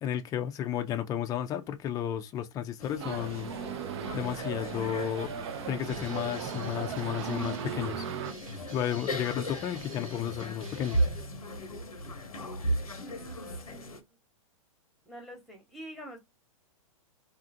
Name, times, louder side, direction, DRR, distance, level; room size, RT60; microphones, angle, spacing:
voice 1, 0.0-3.5 4.1-5.4 5.7-8.1 8.7-11.0, left 10 dB, 20° left, 0.3 m, -33 dB
sound 1, 2.8-14.0, equal, 90° left, 0.7 m, -37 dB
sound 2, 3.0-8.3, right 8 dB, 55° right, 0.4 m, -37 dB
sound 3, 5.9-11.4, right 2 dB, 70° right, 1.0 m, -47 dB
voice 2, 13.0-14.0 15.1-16.2, right 1 dB, ahead, 0.9 m, -46 dB
2.7 x 2.4 x 2.5 m
hypercardioid pair, 110°, 18 cm